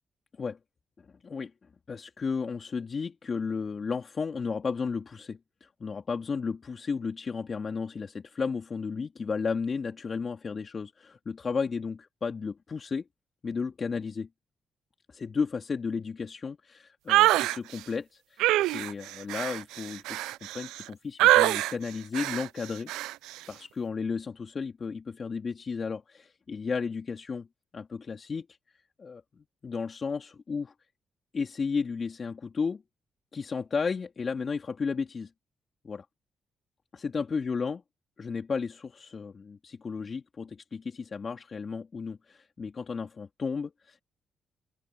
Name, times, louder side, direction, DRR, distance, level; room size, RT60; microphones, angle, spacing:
voice 1, 1.0-1.5 1.9-13.0 13.4-14.3 15.1-22.9 23.5-27.5 27.7-30.7 31.3-32.8 33.3-35.3 35.8-36.1 36.9-37.8 38.2-44.0, left 5 dB, 50° left, 2.6 m, -33 dB
sound 1, 17.1-17.6 18.4-20.8 21.2-21.7 22.1-22.5 22.9-23.1, right 16 dB, 90° right, 0.3 m, -24 dB
open air
supercardioid pair, 55°, 0 cm